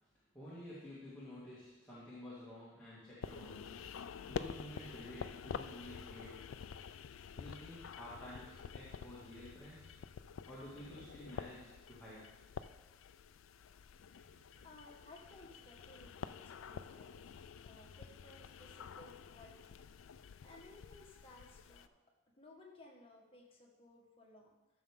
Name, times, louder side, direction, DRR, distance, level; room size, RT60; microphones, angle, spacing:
voice 1, 0.3-6.5 7.3-9.9 10.5-12.3 14.2-14.4, left 1 dB, 5° left, -10 dB, 2.2 m, -51 dB
sound 1, 3.2-21.9, left 6 dB, 85° left, 0.4 m, -49 dB
voice 2, 13.7-14.2 14.5-19.8 20.1-21.9 22.3-24.6, left 2 dB, 30° left, -2 dB, 1.7 m, -59 dB
13.0 x 6.6 x 3.7 m, 1.1 s
head